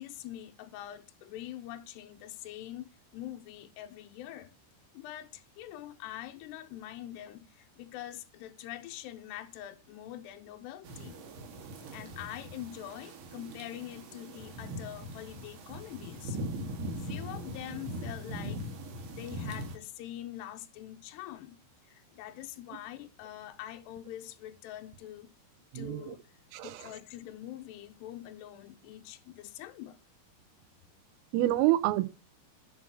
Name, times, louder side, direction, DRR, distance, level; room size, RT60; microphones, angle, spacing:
voice 1, 0.0-4.5 4.9-11.2 11.9-16.4 17.0-18.6 19.2-21.6 21.9-25.3 25.7-26.2 26.6-30.0, left 13 dB, 90° left, 2.3 m, -44 dB
sound 1, 10.8-19.8, equal, 60° right, 3.5 m, -41 dB
voice 2, 25.7-26.2 26.5-27.0 31.3-32.1, right 15 dB, 80° right, 3.4 m, -28 dB
11.0 x 6.3 x 7.1 m
omnidirectional pair, 6.0 m